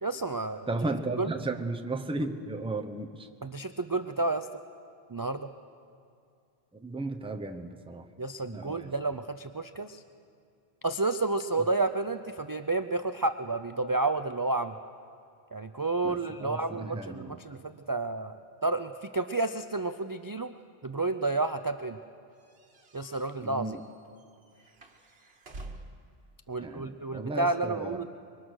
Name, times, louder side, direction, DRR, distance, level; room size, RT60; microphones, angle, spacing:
voice 1, 0.0-0.7 1.2-1.3 3.4-4.5 5.1-5.5 8.2-10.0 10.8-14.7 15.5-20.5 20.8-22.0 22.9-23.8 26.5-28.1, right 3 dB, 30° right, 9 dB, 0.4 m, -30 dB
voice 2, 0.7-3.3 6.8-8.0 8.5-8.9 16.0-17.4 23.4-23.8 26.6-28.1, right 2 dB, 5° right, 5 dB, 0.8 m, -35 dB
sound 1, 22.4-26.1, right 2 dB, 70° right, 1.7 m, -48 dB
25.5 x 23.0 x 6.4 m, 2.4 s
omnidirectional pair, 1.1 m